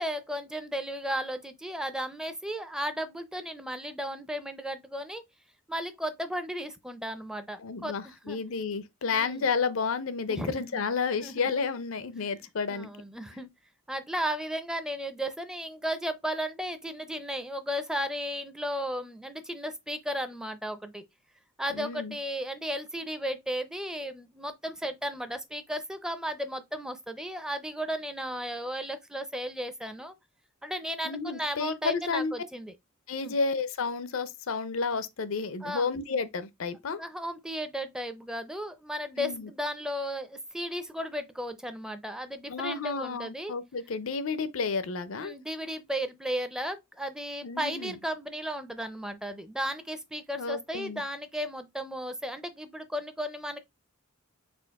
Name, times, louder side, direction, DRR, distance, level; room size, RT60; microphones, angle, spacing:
voice 1, 0.0-5.2 5.7-8.4 9.1-9.4 10.3-10.8 11.2-11.5 12.7-13.5 13.9-21.0 21.6-30.1 30.6-32.7 33.2-33.4 35.6-35.9 37.0-43.5 45.2-53.6, equal, 5° right, 0.5 m, -35 dB
voice 2, 7.6-12.9 21.7-22.1 31.0-32.3 33.1-37.0 39.2-39.5 42.5-45.4 47.4-47.9 50.4-51.0, left 5 dB, 75° left, 0.6 m, -31 dB
4.3 x 2.4 x 4.6 m
head